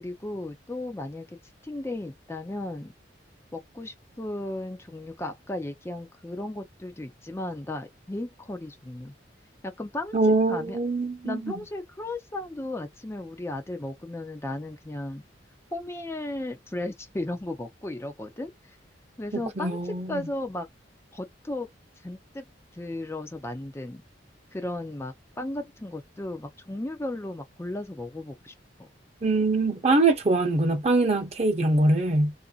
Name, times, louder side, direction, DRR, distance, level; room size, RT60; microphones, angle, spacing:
voice 1, 0.0-1.4 1.6-2.9 3.5-9.1 9.6-10.2 10.5-10.8 11.2-15.2 15.7-18.8 19.2-20.7 21.1-21.7 22.0-22.4 22.7-24.0 24.5-28.5 28.8-28.9, left 1 dB, 15° left, 0.5 m, -35 dB
voice 2, 10.1-11.5 19.6-20.2 29.2-32.3, right 2 dB, 35° right, 0.8 m, -23 dB
3.1 x 2.6 x 2.3 m
head